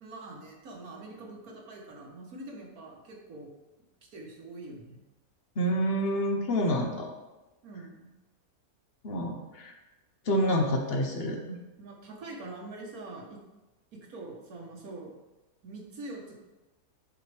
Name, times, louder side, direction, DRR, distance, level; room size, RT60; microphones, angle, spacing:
voice 1, 0.0-3.5 4.1-5.0 7.6-8.1 11.8-13.4 13.9-15.1 15.6-16.4, right 2 dB, 70° right, 0 dB, 1.7 m, -44 dB
voice 2, 5.6-7.1 9.0-9.7 10.2-11.6, equal, 45° left, 3 dB, 1.1 m, -28 dB
10.5 x 4.5 x 3.4 m, 1.1 s
omnidirectional pair, 1.6 m